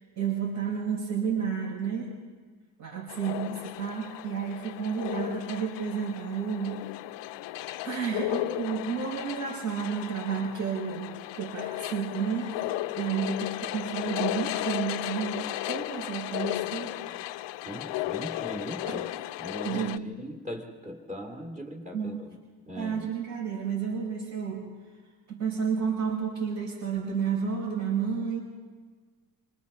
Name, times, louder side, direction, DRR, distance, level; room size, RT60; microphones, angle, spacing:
voice 1, 0.2-2.1 2.8-6.8 7.8-12.6 12.9-16.9 18.8-19.0 19.6-20.1 21.9-22.3 22.7-24.7 25.3-28.4, right 6 dB, 50° right, -6 dB, 6.5 m, -31 dB
sound 1, 3.1-20.0, left 16 dB, 80° left, 0.7 m, -35 dB
voice 2, 17.6-19.1 19.4-22.3 22.7-23.1, equal, 20° right, 1 dB, 2.5 m, -40 dB
27.0 x 26.5 x 4.2 m, 1.5 s
cardioid pair, 180°, 42 cm